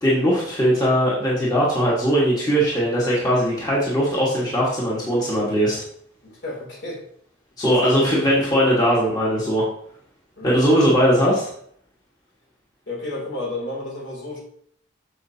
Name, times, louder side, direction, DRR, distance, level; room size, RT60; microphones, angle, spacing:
voice 1, 0.0-5.8 7.6-9.7 10.4-11.5, equal, 20° left, -6 dB, 1.5 m, -19 dB
voice 2, 6.2-7.0 7.6-8.1 10.4-10.6 12.9-14.4, left 2 dB, 60° left, -3 dB, 2.8 m, -32 dB
7.8 x 6.6 x 2.8 m, 0.65 s
head